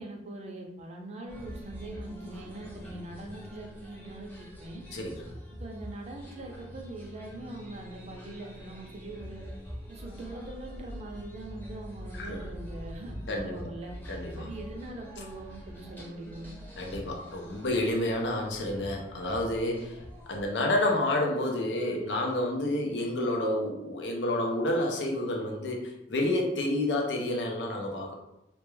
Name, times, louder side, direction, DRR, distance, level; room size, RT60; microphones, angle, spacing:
voice 1, 0.0-4.3 4.6-4.8 5.6-9.4 9.9-13.9 14.3-16.6, right 2 dB, 40° right, 1 dB, 0.4 m, -42 dB
sound 1, 1.3-20.5, equal, 10° left, 0.6 m, -44 dB
voice 2, 4.9-5.2 12.2-12.4 13.3-13.7 14.1-14.5 16.8-28.1, left 1 dB, 90° left, 1 dB, 0.5 m, -29 dB
2.2 x 2.1 x 3.1 m, 0.87 s
head